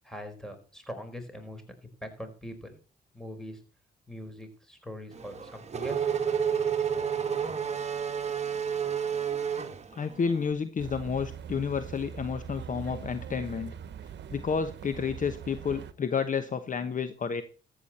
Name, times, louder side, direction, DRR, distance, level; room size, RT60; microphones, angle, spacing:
voice 1, 0.0-2.7 3.1-3.6 4.1-6.3, equal, 5° left, 6 dB, 4.6 m, -42 dB
Race car auto racing / Accelerating revving vroom, 5.2-10.4, right 7 dB, 35° right, 1.6 m, -30 dB
voice 2, 10.0-13.7 14.3-17.4, left 6 dB, 40° left, 10 dB, 1.1 m, -30 dB
sound 1, 10.8-15.9, right 8 dB, 60° right, 1.1 m, -42 dB
14.0 x 8.5 x 4.3 m, 0.37 s
cardioid pair, 90°, 20 cm